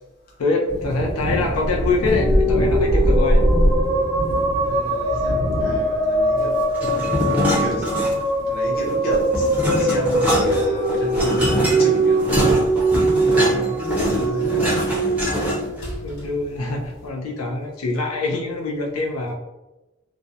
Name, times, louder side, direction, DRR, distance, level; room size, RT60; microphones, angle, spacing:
voice 1, 0.4-3.4 6.8-6.9 16.0-19.3, left 3 dB, 90° left, 0 dB, 0.4 m, -24 dB
sound 1, 0.7-17.1, equal, 65° left, 1.0 m, -25 dB
sound 2, 1.9-16.3, right 2 dB, 65° right, 0.5 m, -22 dB
voice 2, 4.6-6.7 7.3-7.9 8.5-12.5 13.3-15.0, left 1 dB, 45° left, -4 dB, 0.7 m, -30 dB
sound 3, 6.7-8.4 8.8-15.8, left 1 dB, 10° right, 0.5 m, -24 dB
2.4 x 2.1 x 2.6 m, 1.0 s
head